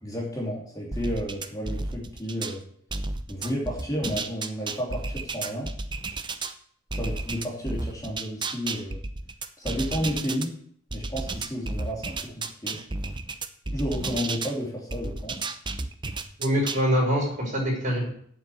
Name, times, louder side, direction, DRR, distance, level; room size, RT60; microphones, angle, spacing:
voice 1, 0.0-2.6 3.3-5.7 6.9-9.0 9.6-10.5 10.9-12.8 13.7-15.5, equal, 20° left, -3 dB, 2.9 m, -32 dB
sound 1, 0.9-2.6 2.9-6.5 6.9-10.5 10.9-14.5 14.9-16.8, right 3 dB, 25° right, 0.7 m, -32 dB
voice 2, 16.4-18.1, equal, 40° right, -2 dB, 5.4 m, -24 dB
8.3 x 7.3 x 8.4 m, 0.63 s
head